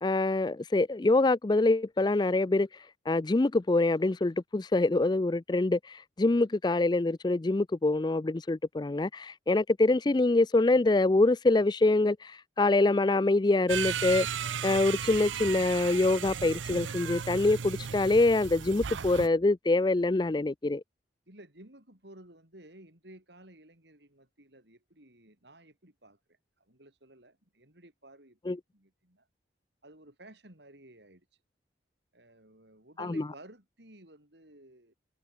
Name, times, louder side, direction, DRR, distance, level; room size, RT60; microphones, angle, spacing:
voice 1, 0.0-2.7 3.1-14.3 14.6-20.8 28.5-28.6 33.0-33.1, left 2 dB, 25° left, 0.4 m, -25 dB
sound 1, 13.7-19.3, right 8 dB, 85° right, 0.6 m, -35 dB
voice 2, 21.3-29.3 29.8-31.3 32.1-34.9, right 1 dB, 65° right, 5.6 m, -54 dB
head